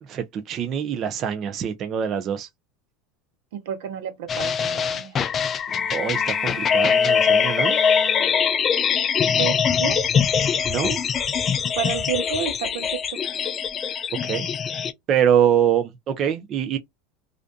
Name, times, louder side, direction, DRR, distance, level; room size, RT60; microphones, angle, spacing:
voice 1, 0.0-2.5 5.9-7.8 10.6-11.0 14.2-14.5 15.1-16.8, right 9 dB, 40° right, 0.4 m, -24 dB
voice 2, 3.5-5.2 9.4-10.1 11.7-13.2, right 8 dB, 80° right, 0.8 m, -30 dB
sound 1, 4.3-14.9, left 7 dB, 30° left, 0.3 m, -22 dB
Bowed string instrument, 5.7-8.8, left 1 dB, ahead, 1.0 m, -36 dB
2.5 x 2.2 x 2.5 m
supercardioid pair, 135°, 0 cm